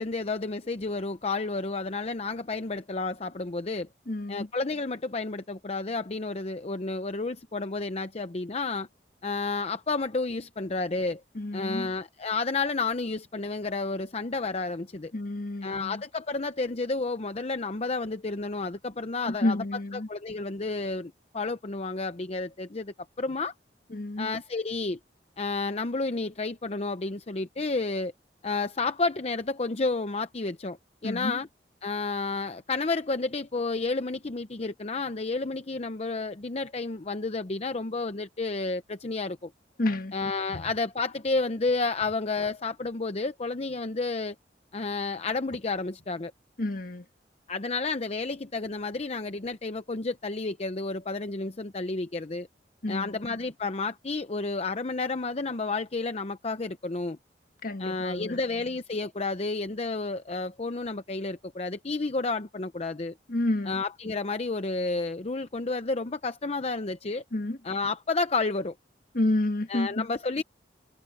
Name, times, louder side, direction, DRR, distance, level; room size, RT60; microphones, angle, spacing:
voice 1, 0.0-3.9 4.3-8.9 9.2-11.2 11.5-15.1 15.6-19.6 19.9-23.5 24.2-25.0 25.4-28.1 28.4-30.8 31.0-31.5 31.8-39.5 40.1-44.3 44.7-46.3 47.5-52.5 52.9-57.2 57.8-63.1 63.7-67.2 67.6-68.7 69.7-70.4, left 3 dB, 35° left, 0.7 m, -31 dB
voice 2, 4.1-4.5 11.3-11.9 15.1-16.0 19.3-20.1 23.9-24.3 31.0-31.4 39.8-40.1 40.5-40.6 46.6-47.0 52.8-53.2 57.6-58.4 63.3-63.8 67.3-67.6 69.1-70.1, left 1 dB, 55° left, 1.6 m, -29 dB
head